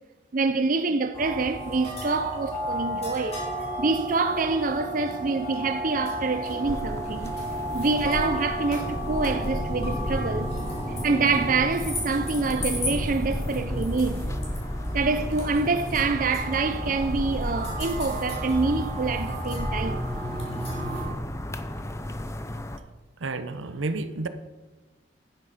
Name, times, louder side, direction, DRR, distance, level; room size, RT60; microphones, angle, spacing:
voice 1, 0.3-3.4 3.8-7.3 7.7-10.5 10.9-14.6 14.9-20.0, right 3 dB, 45° right, 0.6 m, -26 dB
sound 1, 1.1-21.1, equal, 35° left, 3.8 m, -33 dB
sound 2, 6.6-22.8, left 1 dB, 15° left, 0.6 m, -34 dB
voice 2, 23.2-24.3, right 3 dB, 80° right, 0.9 m, -31 dB
11.5 x 10.0 x 5.0 m
head